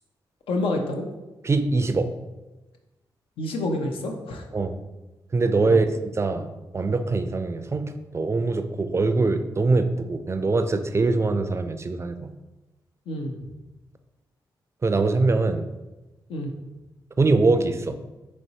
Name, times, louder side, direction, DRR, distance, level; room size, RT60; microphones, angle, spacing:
voice 1, 0.5-1.1 3.4-4.4 5.7-5.8 13.1-13.4 16.3-16.5, left 1 dB, 85° left, 3 dB, 0.5 m, -28 dB
voice 2, 1.4-2.1 4.5-4.7 5.3-6.5 6.7-12.3 14.8-15.7 17.2-18.0, right 3 dB, 30° right, 8 dB, 0.4 m, -23 dB
4.3 x 3.0 x 2.7 m, 1.1 s
supercardioid pair, 55°, 9 cm